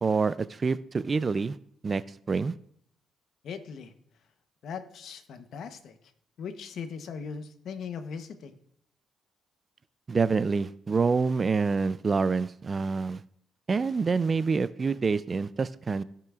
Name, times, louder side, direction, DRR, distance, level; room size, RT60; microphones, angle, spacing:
voice 1, 0.0-1.6 1.8-2.0 2.3-2.5 10.1-13.2 13.7-16.0, right 4 dB, 35° right, 0.3 m, -26 dB
voice 2, 3.4-3.9 4.6-6.0 6.4-8.5, left 6 dB, 70° left, 0.9 m, -39 dB
14.5 x 5.8 x 2.4 m
cardioid pair, 90°, 0 cm